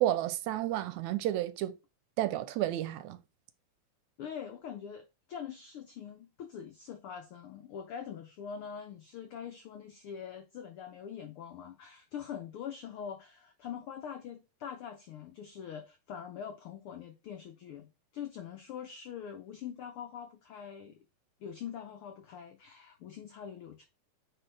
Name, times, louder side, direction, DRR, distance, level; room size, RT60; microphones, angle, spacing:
voice 1, 0.0-1.7 2.2-3.2, right 13 dB, 80° right, 1.8 m, -31 dB
voice 2, 4.2-5.0 5.3-17.9 18.1-21.0 21.4-23.9, left 8 dB, 85° left, 1.2 m, -43 dB
8.8 x 4.1 x 3.3 m
omnidirectional pair, 3.4 m